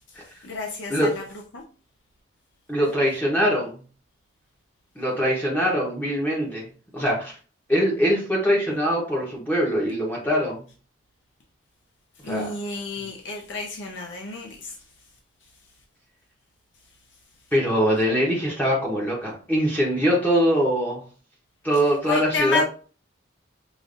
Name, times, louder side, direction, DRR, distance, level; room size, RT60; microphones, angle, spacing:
voice 1, 0.4-1.2 1.5-1.6 12.2-14.8 21.7-22.6, left 3 dB, 75° left, 0.6 m, -30 dB
voice 2, 2.7-3.7 5.0-6.7 6.9-7.3 7.7-10.6 12.2-12.5 17.5-21.0 21.6-22.6, equal, 10° left, 0.9 m, -22 dB
5.0 x 2.5 x 2.5 m
head